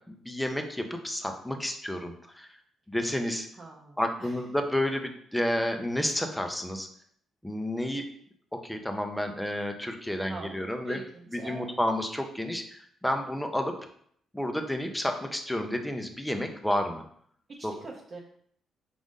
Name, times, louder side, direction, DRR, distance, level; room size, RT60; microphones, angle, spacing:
voice 1, 0.1-2.5 2.9-3.5 4.0-6.9 7.4-8.0 8.6-11.0 11.3-13.7 14.3-17.0 17.6-17.7, left 1 dB, 5° left, 4 dB, 0.5 m, -30 dB
voice 2, 3.6-4.4 10.3-11.8 17.6-18.2, right 3 dB, 40° right, -2 dB, 0.7 m, -43 dB
4.9 x 2.6 x 3.7 m, 0.65 s
cardioid pair, 90°, 0 cm